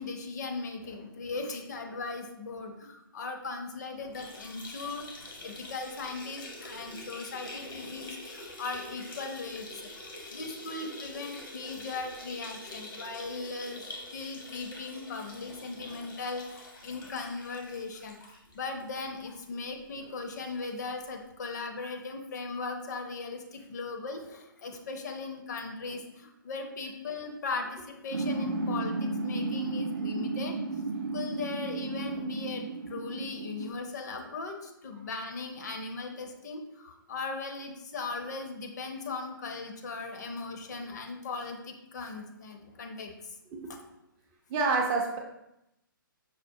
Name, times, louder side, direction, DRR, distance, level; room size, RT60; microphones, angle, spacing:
voice 1, 0.0-9.9 10.3-13.8 14.1-18.2 18.5-30.6 31.1-43.3 43.7-43.8, left 4 dB, 50° left, 5 dB, 0.5 m, -38 dB
sound 1, 4.0-19.4 19.8-19.9 20.2-20.3 21.3-21.4, left 2 dB, 75° left, 0.9 m, -45 dB
sound 2, 28.1-33.7, right 3 dB, 90° right, 0.4 m, -33 dB
voice 2, 44.5-45.2, right 4 dB, 20° right, 1 dB, 0.4 m, -27 dB
5.6 x 2.0 x 2.6 m, 0.85 s
figure-of-eight pair, 135°, 12 cm